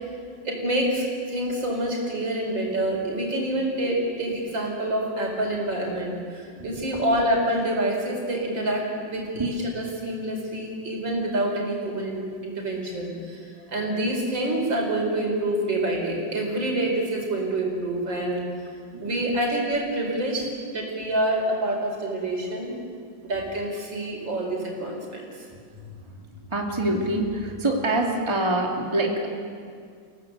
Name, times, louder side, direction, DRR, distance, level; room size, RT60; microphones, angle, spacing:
voice 1, 0.4-18.4 19.0-22.7 23.2-25.5, right 1 dB, 85° right, 0 dB, 5.7 m, -27 dB
voice 2, 6.6-7.0 9.4-9.5 18.9-19.3 25.7-25.9 26.5-29.3, right 1 dB, 15° right, 0 dB, 2.4 m, -26 dB
29.5 x 17.0 x 8.2 m, 2.2 s
omnidirectional pair, 2.0 m